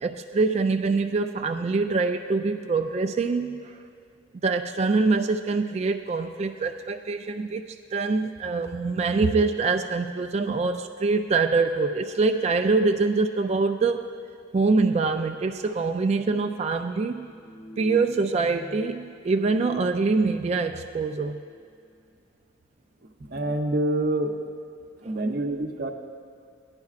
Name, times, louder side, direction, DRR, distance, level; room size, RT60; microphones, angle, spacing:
voice 1, 0.0-3.7 4.4-7.7 7.9-14.1 14.5-17.3 17.8-21.4 25.0-25.2, right 4 dB, 35° right, 6 dB, 0.3 m, -24 dB
sound 1, 17.1-18.9 19.2-20.8 21.2-21.6, left 1 dB, 20° left, 0.7 m, -44 dB
voice 2, 23.3-24.3 25.0-25.9, right 1 dB, 55° right, 4 dB, 0.7 m, -26 dB
16.5 x 10.5 x 2.4 m, 2.4 s
head